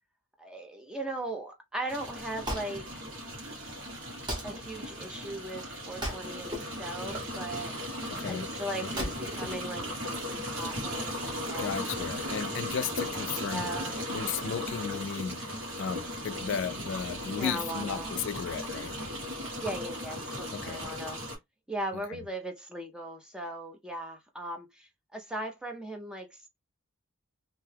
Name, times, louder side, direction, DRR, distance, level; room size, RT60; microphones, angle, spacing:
voice 1, 0.4-3.0 4.4-7.7 8.3-11.9 13.4-14.0 16.8-16.9 17.3-18.1 19.6-21.2 21.7-26.5, right 1 dB, 5° right, 0.4 m, -38 dB
sound 1, 1.9-21.4, equal, 60° right, 1.4 m, -37 dB
Wood, 2.0-10.4, equal, 20° right, 0.9 m, -41 dB
voice 2, 8.1-8.5 8.8-9.1 11.6-13.7 14.1-19.0 20.5-20.9 21.9-22.2, left 7 dB, 55° left, 0.3 m, -35 dB
2.7 x 2.2 x 3.2 m
head